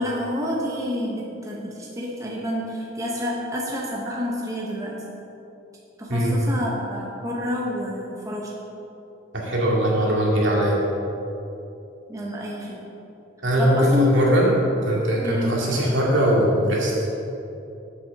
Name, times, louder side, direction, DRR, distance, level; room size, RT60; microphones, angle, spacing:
voice 1, 0.0-5.0 6.0-8.5 12.1-12.8 13.6-14.1 15.2-15.6, left 1 dB, 15° right, -3 dB, 0.9 m, -28 dB
voice 2, 9.3-10.8 13.4-14.5 14.8-16.9, equal, 70° right, -3 dB, 2.2 m, -20 dB
7.8 x 6.1 x 6.7 m, 2.8 s
head